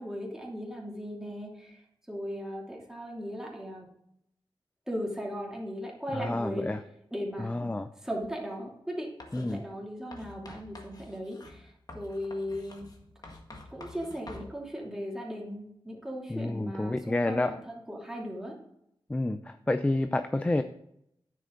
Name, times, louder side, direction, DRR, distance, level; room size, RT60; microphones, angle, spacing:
voice 1, 0.0-3.9 4.9-6.7 7.1-7.6 8.0-12.9 13.7-18.6, equal, 5° right, -2 dB, 2.9 m, -37 dB
voice 2, 6.1-6.8 7.4-7.9 9.3-9.6 16.3-17.5 19.1-20.6, left 2 dB, 15° left, 9 dB, 0.5 m, -29 dB
Writing, 9.2-9.6 10.1-14.5, left 2 dB, 45° left, 1.7 m, -48 dB
9.8 x 7.6 x 3.9 m, 0.77 s
wide cardioid pair, 90°, 9 cm